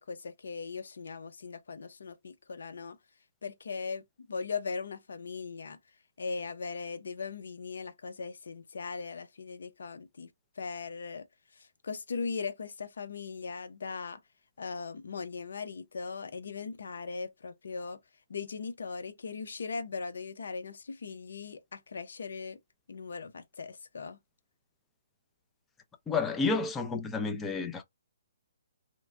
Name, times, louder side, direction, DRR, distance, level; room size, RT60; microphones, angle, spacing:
voice 1, 0.0-3.0 3.4-5.8 6.2-10.3 10.6-11.3 11.8-14.2 14.6-18.0 18.3-22.6 22.9-24.2, left 5 dB, 75° left, 0.7 m, -39 dB
voice 2, 26.1-27.8, left 4 dB, 10° left, 0.5 m, -30 dB
3.0 x 2.2 x 2.5 m
hypercardioid pair, 155°, 0 cm